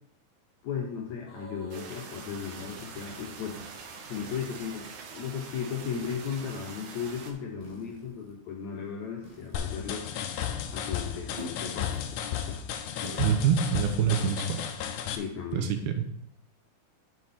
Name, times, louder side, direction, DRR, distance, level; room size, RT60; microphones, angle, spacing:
voice 1, 0.6-3.6 4.1-10.1 10.7-12.6 15.1-15.7, left 7 dB, 70° left, 0 dB, 1.8 m, -36 dB
sound 1, 1.3-2.0 2.5-3.2 4.2-4.8 5.8-6.5 7.6-8.3 9.2-10.0 11.4-11.7 11.9-12.0 13.0-13.3, equal, 15° left, 1.2 m, -47 dB
sound 2, 1.7-7.3, right 5 dB, 70° right, 2.3 m, -44 dB
sound 3, 9.5-15.2, left 9 dB, 85° left, 1.7 m, -34 dB
voice 2, 13.2-14.6 15.5-16.0, right 8 dB, 90° right, 6 dB, 2.8 m, -26 dB
8.3 x 6.2 x 4.2 m, 0.74 s
omnidirectional pair, 4.3 m